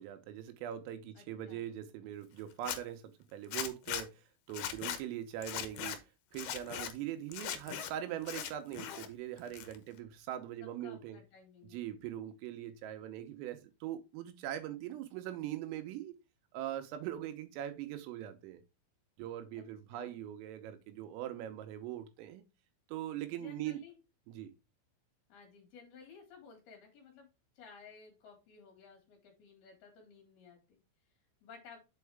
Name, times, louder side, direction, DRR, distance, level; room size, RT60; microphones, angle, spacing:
voice 1, 0.0-4.2 4.5-6.0 6.3-11.2 11.7-16.1 16.5-18.6 19.2-22.4 22.9-23.8 24.3-24.5, right 11 dB, 85° right, 3.6 m, -41 dB
voice 2, 1.2-1.6 5.4-5.6 10.6-11.8 19.5-19.7 19.9-20.2 23.3-24.0 25.3-27.3 27.6-30.8 31.4-31.8, left 5 dB, 55° left, 3.6 m, -56 dB
Zipper (clothing), 2.5-2.8 3.5-4.0 4.5-5.0 5.4-6.0 6.3-6.9 7.3-7.9 8.2-9.1 9.4-10.0, left 10 dB, 75° left, 3.0 m, -39 dB
7.6 x 4.7 x 3.4 m
omnidirectional pair, 5.8 m